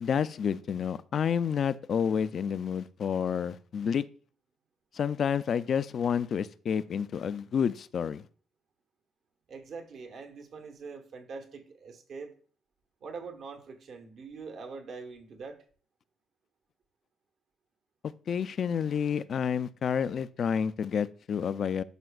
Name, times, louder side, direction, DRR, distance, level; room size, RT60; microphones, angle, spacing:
voice 1, 0.0-4.0 4.9-8.2 18.3-21.8, left 7 dB, 55° left, 0.4 m, -29 dB
voice 2, 9.5-12.3 13.0-15.6, right 4 dB, 65° right, 1.2 m, -43 dB
12.0 x 5.0 x 2.4 m
cardioid pair, 90°, 0 cm